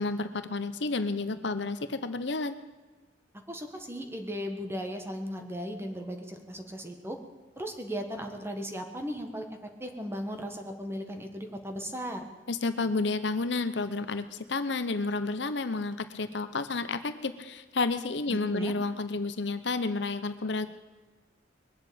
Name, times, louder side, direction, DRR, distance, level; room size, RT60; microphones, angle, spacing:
voice 1, 0.0-2.6 12.5-20.7, left 3 dB, 65° left, 11 dB, 0.9 m, -31 dB
voice 2, 3.5-7.2 7.6-12.3 18.3-18.7, equal, 15° right, 5 dB, 1.5 m, -37 dB
21.5 x 7.8 x 8.6 m, 1.3 s
head